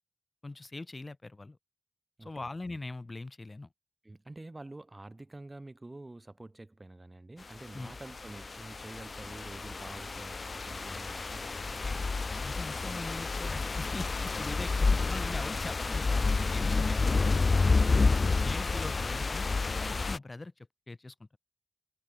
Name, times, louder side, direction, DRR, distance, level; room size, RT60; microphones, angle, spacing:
voice 1, 0.4-1.6 2.2-3.7 7.7-7.9 12.4-17.4 18.4-21.4, left 2 dB, 35° left, 1.5 m, -42 dB
voice 2, 4.0-12.0, right 2 dB, 30° right, 2.7 m, -48 dB
sound 1, 7.8-20.2, left 4 dB, 55° left, 0.4 m, -29 dB
wide cardioid pair, 105°, 0 cm